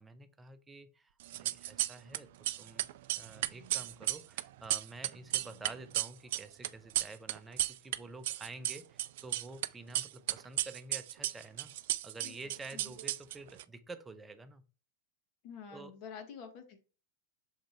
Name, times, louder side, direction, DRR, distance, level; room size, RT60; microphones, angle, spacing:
voice 1, 0.0-2.3 2.6-11.7 12.0-14.6 15.7-16.0, right 3 dB, 10° right, 9 dB, 0.8 m, -49 dB
sound 1, 1.2-2.2 2.4-8.0 8.2-9.7 9.9-13.6, right 15 dB, 55° right, 0.4 m, -34 dB
voice 2, 12.2-12.9 15.4-16.8, left 7 dB, 45° left, 6 dB, 1.3 m, -48 dB
6.7 x 5.1 x 3.0 m, 0.34 s
figure-of-eight pair, 90°, 0 cm